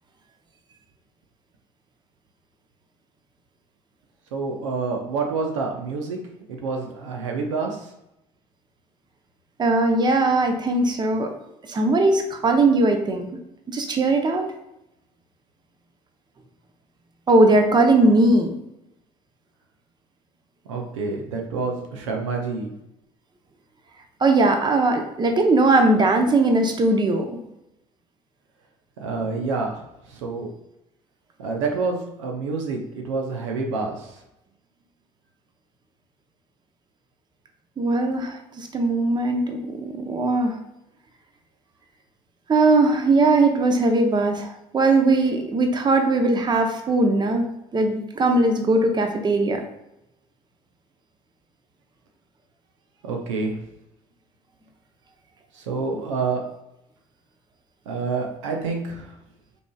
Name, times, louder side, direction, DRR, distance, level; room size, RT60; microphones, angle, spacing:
voice 1, 4.3-6.2 6.5-7.8 20.7-22.7 29.0-29.8 30.1-30.5 31.4-34.1 53.0-53.6 55.5-56.4 57.9-59.1, right 4 dB, 90° right, 2 dB, 0.7 m, -27 dB
voice 2, 9.6-11.3 11.7-13.4 13.7-14.5 17.3-18.6 24.2-27.3 37.8-40.6 42.5-47.5 47.7-49.6, right 2 dB, 30° right, 5 dB, 0.7 m, -19 dB
5.0 x 3.3 x 2.3 m, 0.87 s
hypercardioid pair, 70°, 15 cm